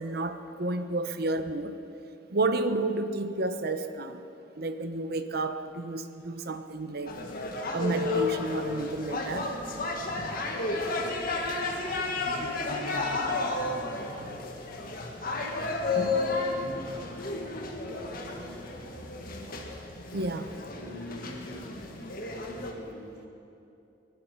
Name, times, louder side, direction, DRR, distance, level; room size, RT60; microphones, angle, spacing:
voice 1, 0.0-1.8 2.3-4.2 4.5-7.2 7.7-9.5 15.9-16.1 20.1-20.5, right 2 dB, 55° right, 9 dB, 0.9 m, -31 dB
sound 1, 7.1-22.7, left 3 dB, 50° left, 1.7 m, -32 dB
voice 2, 11.0-11.8 12.1-14.4 15.3-19.5 20.4-21.9 22.2-23.3, left 1 dB, 75° left, -1 dB, 4.0 m, -45 dB
23.5 x 11.5 x 5.4 m, 2.8 s
head